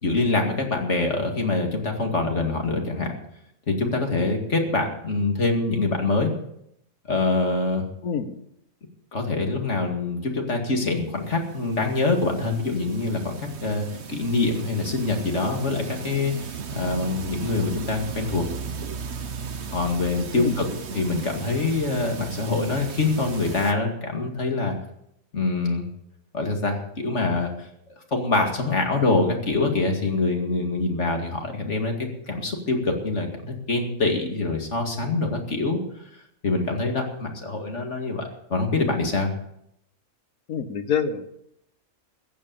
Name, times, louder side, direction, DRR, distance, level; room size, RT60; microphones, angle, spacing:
voice 1, 0.0-3.1 3.7-6.3 7.1-7.8 9.1-13.3 13.6-18.5 19.7-20.7 20.9-24.8 25.3-25.9 26.3-27.7 28.1-31.9 32.3-35.8 36.4-39.3, left 3 dB, 55° left, 3 dB, 2.5 m, -25 dB
voice 2, 8.0-8.4 20.3-20.6 40.5-41.4, left 7 dB, 85° left, 10 dB, 1.5 m, -27 dB
sound 1, 11.0-23.7, right 5 dB, 55° right, 1.2 m, -36 dB
15.0 x 8.8 x 7.0 m, 0.77 s
omnidirectional pair, 1.4 m